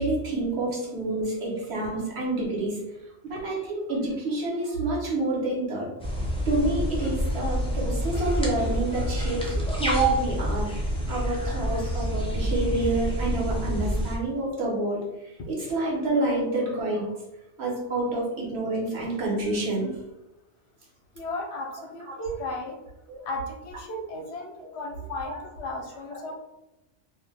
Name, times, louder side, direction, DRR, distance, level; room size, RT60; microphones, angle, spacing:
voice 1, 0.0-5.9 6.5-10.7 11.1-17.1 17.6-20.0 22.1-22.2 23.1-23.2 25.2-25.3 26.1-26.2, right 2 dB, 70° right, -3 dB, 1.2 m, -28 dB
sound 1, 6.0-14.2, right 1 dB, 10° left, 0.4 m, -27 dB
voice 2, 21.1-22.8 23.2-26.3, left 1 dB, 75° left, 2 dB, 0.9 m, -35 dB
2.7 x 2.2 x 3.3 m, 0.94 s
omnidirectional pair, 1.2 m